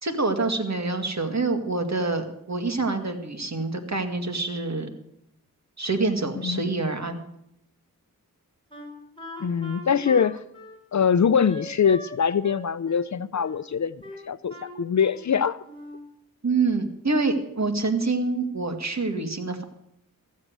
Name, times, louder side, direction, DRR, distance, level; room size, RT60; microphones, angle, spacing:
voice 1, 0.0-5.0 5.8-7.2 16.4-19.6, right 3 dB, 50° right, 6 dB, 2.2 m, -26 dB
Wind instrument woodwind instrument, 8.7-12.2 12.4-13.6 14.0-15.3 15.6-16.1, equal, 15° left, 3.8 m, -41 dB
voice 2, 9.4-10.4 10.9-13.9 14.3-15.6, left 7 dB, 50° left, 16 dB, 0.6 m, -23 dB
15.0 x 7.5 x 8.0 m, 0.76 s
cardioid pair, 45°, 36 cm